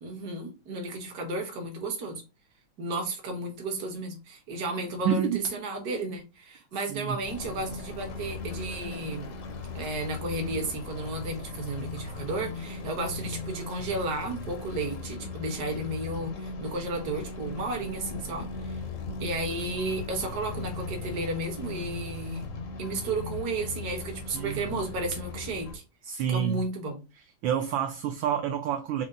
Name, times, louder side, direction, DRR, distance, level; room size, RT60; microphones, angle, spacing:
voice 1, 0.0-2.2 2.8-9.4 9.7-18.8 19.2-22.5 22.8-25.8 26.3-27.0, right 2 dB, 55° right, 1.4 m, -33 dB
voice 2, 5.0-5.4 6.9-7.2 24.3-24.6 26.0-26.6 27.4-29.0, right 9 dB, 75° right, 1.2 m, -28 dB
sound 1, 7.2-25.8, left 3 dB, 75° left, 0.7 m, -38 dB
5.2 x 2.0 x 3.7 m
omnidirectional pair, 2.3 m